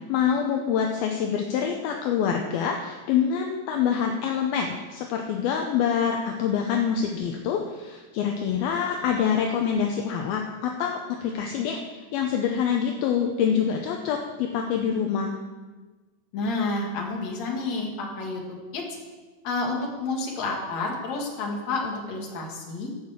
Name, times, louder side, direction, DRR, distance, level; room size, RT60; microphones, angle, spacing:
voice 1, 0.1-15.3, left 7 dB, 75° left, 2 dB, 2.5 m, -26 dB
voice 2, 16.3-18.4 18.7-18.8 19.4-23.1, left 3 dB, 50° left, 0 dB, 2.9 m, -30 dB
16.0 x 6.0 x 7.4 m, 1.3 s
omnidirectional pair, 4.7 m